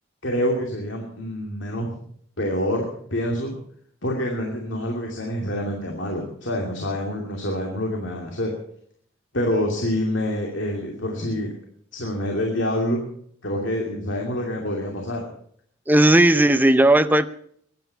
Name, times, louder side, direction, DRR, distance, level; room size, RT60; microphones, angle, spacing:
voice 1, 0.2-1.9 2.4-3.5 4.0-8.5 9.3-11.5 11.9-13.1 13.4-15.2, left 1 dB, 65° left, 1 dB, 2.6 m, -26 dB
voice 2, 15.9-17.3, right 1 dB, 10° right, 12 dB, 0.6 m, -16 dB
22.0 x 9.7 x 5.7 m, 0.64 s
head